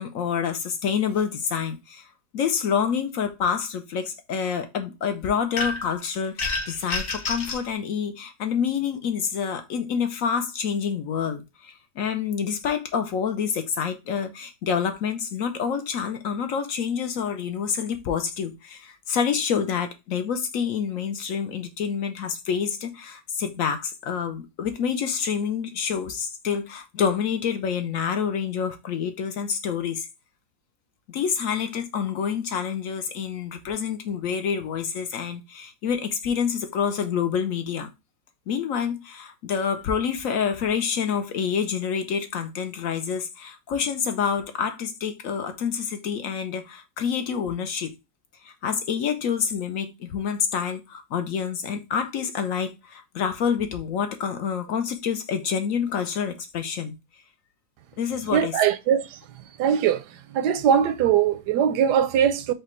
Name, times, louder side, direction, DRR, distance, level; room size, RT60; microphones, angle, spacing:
voice 1, 0.0-2.1 2.3-30.1 31.1-37.9 38.5-47.9 48.4-56.9 58.0-58.5, left 7 dB, 65° left, 0.9 m, -27 dB
sound 1, 5.6-6.0 6.4-7.7, left 3 dB, 50° left, 1.2 m, -28 dB
voice 2, 58.3-59.2 59.6-60.0 60.3-62.5, right 8 dB, 85° right, 1.2 m, -21 dB
5.0 x 2.2 x 4.3 m
omnidirectional pair, 1.7 m